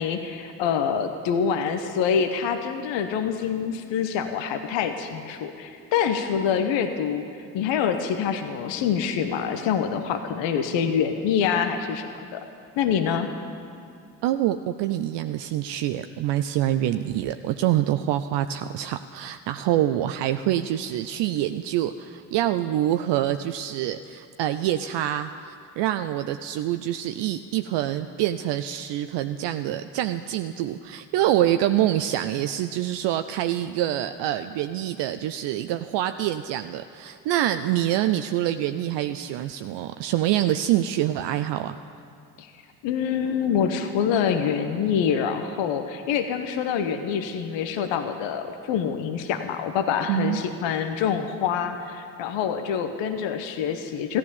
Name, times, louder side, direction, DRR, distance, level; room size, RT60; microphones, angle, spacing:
voice 1, 0.0-7.2 7.5-12.4 12.8-13.3 42.4-42.5 42.8-54.2, left 7 dB, 70° left, 7 dB, 1.0 m, -26 dB
voice 2, 14.2-41.8 50.1-50.4, right 12 dB, 65° right, 9 dB, 0.6 m, -26 dB
14.5 x 11.5 x 7.0 m, 2.5 s
hypercardioid pair, 45°, 46 cm